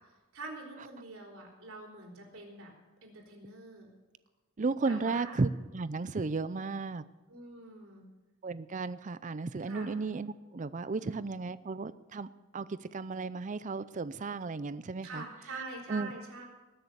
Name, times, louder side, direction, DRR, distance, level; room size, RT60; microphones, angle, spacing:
voice 1, 0.3-2.7 3.0-3.9 4.9-5.3 7.3-8.0 9.6-9.9 10.9-11.5 15.0-16.4, right 3 dB, 75° right, 0 dB, 3.9 m, -45 dB
voice 2, 4.6-7.0 8.4-12.3 12.5-15.2 15.9-16.1, right 3 dB, 35° right, 16 dB, 0.5 m, -34 dB
20.0 x 6.7 x 7.9 m, 1.2 s
head